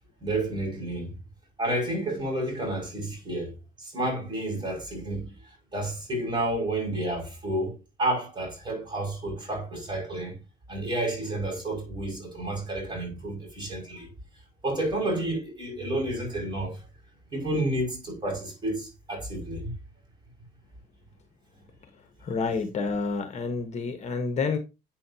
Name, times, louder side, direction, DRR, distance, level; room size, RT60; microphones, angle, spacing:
voice 1, 0.2-1.1 1.6-10.4 10.7-14.1 14.6-16.8 17.3-19.7, right 1 dB, 25° right, 5.4 m, -30 dB
voice 2, 22.2-24.6, left 4 dB, 40° left, 1.1 m, -29 dB
8.9 x 7.5 x 2.8 m
cardioid pair, 110°, 17 cm